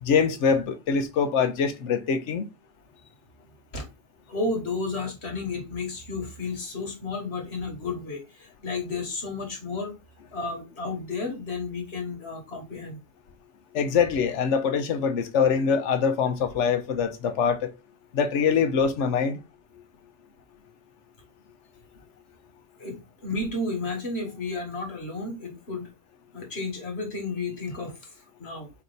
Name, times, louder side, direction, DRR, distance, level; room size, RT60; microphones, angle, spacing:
voice 1, 0.0-2.5 13.7-17.7 18.1-19.4, left 6 dB, 80° left, 1.1 m, -24 dB
voice 2, 4.3-9.9 10.3-13.0 22.8-25.9 26.3-28.7, left 3 dB, 60° left, 1.7 m, -32 dB
4.7 x 2.9 x 3.9 m
omnidirectional pair, 1.2 m